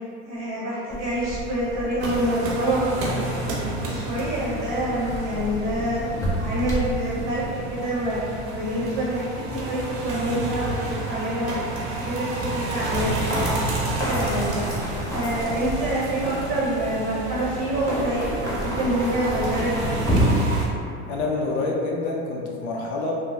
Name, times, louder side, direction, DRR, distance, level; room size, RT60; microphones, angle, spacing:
voice 1, 0.3-3.3 3.8-6.1 6.4-11.5 12.0-13.5 14.0-14.5 15.1-20.0, right 1 dB, 35° right, -7 dB, 0.8 m, -26 dB
sound 1, 0.9-20.3, equal, 10° left, 0.6 m, -32 dB
sound 2, 2.0-20.7, right 2 dB, 65° right, 0.7 m, -31 dB
voice 2, 21.1-23.1, left 3 dB, 75° left, -1 dB, 0.5 m, -27 dB
3.0 x 2.1 x 2.6 m, 2.5 s
hypercardioid pair, 95°, 35 cm